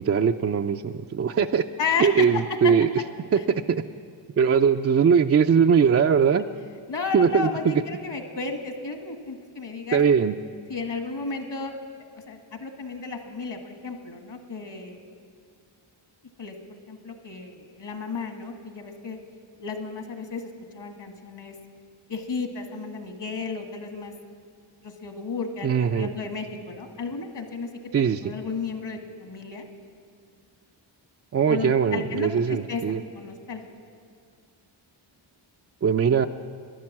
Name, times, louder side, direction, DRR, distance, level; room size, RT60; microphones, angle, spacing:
voice 1, 0.0-1.6 2.0-2.9 3.3-3.8 4.4-6.5 7.1-7.8 9.9-10.3 25.6-26.1 27.9-28.2 31.3-33.0 35.8-36.3, right 6 dB, 35° right, 6 dB, 0.4 m, -21 dB
voice 2, 1.8-2.3 2.6-2.7 6.9-10.0 10.7-11.8 12.3-15.0 16.4-19.2 19.6-21.5 22.1-24.1 24.8-27.7 28.2-29.7 31.5-33.6, left 5 dB, 55° left, 5 dB, 1.7 m, -33 dB
12.0 x 10.5 x 7.3 m, 2.3 s
cardioid pair, 75°, 49 cm